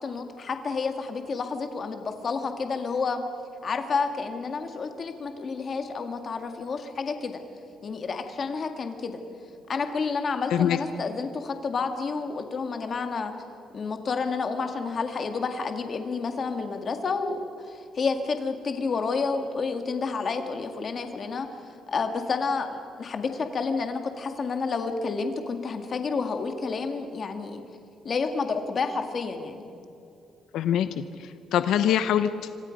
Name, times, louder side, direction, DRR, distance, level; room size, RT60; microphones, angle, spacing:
voice 1, 0.0-3.2 3.6-7.4 7.8-9.2 9.7-13.3 13.7-17.4 17.7-21.5 21.9-27.6 28.0-29.6, left 4 dB, 35° left, 6 dB, 1.9 m, -30 dB
voice 2, 30.5-32.5, left 10 dB, 85° left, 11 dB, 0.9 m, -24 dB
26.5 x 25.5 x 5.3 m, 2.7 s
cardioid pair, 175°, 0 cm